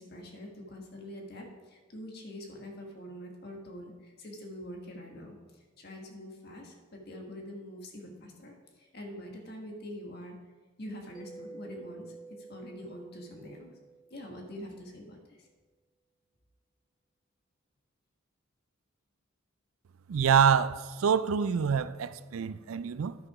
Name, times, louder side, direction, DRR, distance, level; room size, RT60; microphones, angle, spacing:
voice 1, 0.0-10.4 10.8-13.8 14.1-15.5, left 1 dB, 50° left, 1.5 m, -45 dB
Mallet percussion, 11.1-14.6, right 3 dB, 20° left, 1.1 m, -50 dB
voice 2, 20.1-23.2, right 7 dB, 85° right, 0.4 m, -26 dB
10.0 x 6.0 x 4.8 m
head